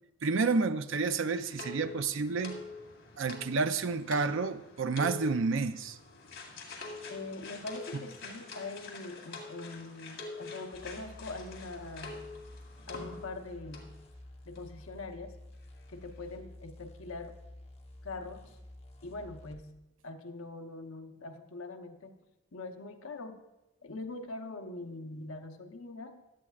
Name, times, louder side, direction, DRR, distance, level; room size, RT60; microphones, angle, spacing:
voice 1, 0.2-2.6 3.2-6.0 7.9-8.0, right 4 dB, 70° right, 0.5 m, -30 dB
sound 1, 0.9-13.5 13.7-14.0 14.6-14.7 14.9-15.0, left 3 dB, 65° left, 2.2 m, -46 dB
voice 2, 7.1-12.3 12.9-14.0 14.4-15.3 15.9-17.4 18.0-18.6 19.0-22.2 22.5-23.4 23.8-26.2, left 3 dB, 80° left, 1.0 m, -43 dB
sound 2, 10.7-19.6, left 1 dB, 30° left, 1.0 m, -51 dB
16.0 x 11.0 x 2.4 m
head